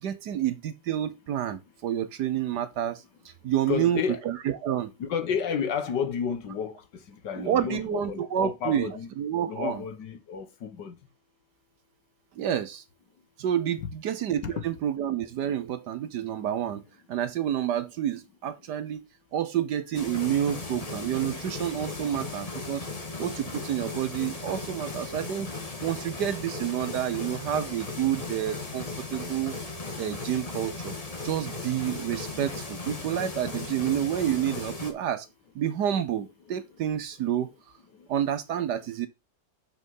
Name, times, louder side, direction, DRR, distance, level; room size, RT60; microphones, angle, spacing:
voice 1, 0.0-4.9 7.3-9.8 12.4-12.8 13.4-16.8 17.1-19.0 19.3-22.9 23.2-25.5 25.8-29.6 30.0-30.9 31.2-35.3 35.5-37.5 38.1-39.1, right 10 dB, 70° right, 1.3 m, -29 dB
voice 2, 3.7-4.2 5.0-6.7 7.2-9.1 9.5-10.9 14.4-14.5, left 7 dB, 70° left, 1.8 m, -31 dB
sound 1, 19.9-34.9, left 3 dB, 20° left, 1.5 m, -37 dB
6.8 x 6.2 x 5.4 m
omnidirectional pair, 2.0 m